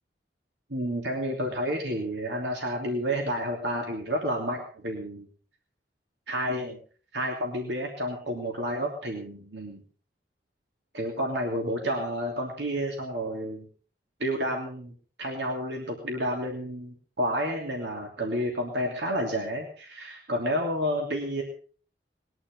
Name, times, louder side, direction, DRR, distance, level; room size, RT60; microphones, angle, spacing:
voice 1, 0.7-5.3 6.3-6.8 7.1-9.8 10.9-13.7 14.2-21.4, equal, 80° right, 1 dB, 3.0 m, -30 dB
21.0 x 11.0 x 5.4 m, 0.43 s
head